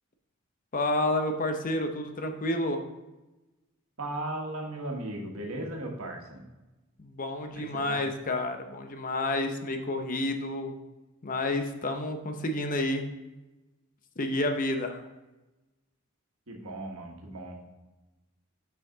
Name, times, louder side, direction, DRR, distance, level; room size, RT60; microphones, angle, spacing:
voice 1, 0.7-2.8 7.0-10.7 11.2-13.1 14.2-15.1, left 1 dB, 40° left, 5 dB, 0.7 m, -30 dB
voice 2, 4.0-6.4 7.5-8.0 16.5-17.7, right 1 dB, 90° right, 1 dB, 1.4 m, -37 dB
6.5 x 5.8 x 3.9 m, 1.1 s
head